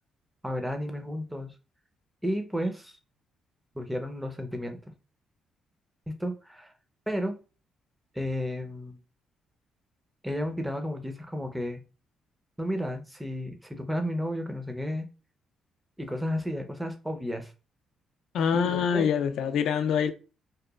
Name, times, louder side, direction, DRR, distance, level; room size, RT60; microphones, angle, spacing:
voice 1, 0.4-1.5 2.2-2.9 3.7-4.8 6.1-6.7 7.1-7.4 8.1-9.0 10.2-11.8 12.6-15.1 16.0-17.5 18.5-19.1, equal, 5° right, 0.5 m, -32 dB
voice 2, 18.3-20.1, left 7 dB, 75° left, 0.3 m, -25 dB
2.9 x 2.3 x 2.2 m
cardioid pair, 90°, 0 cm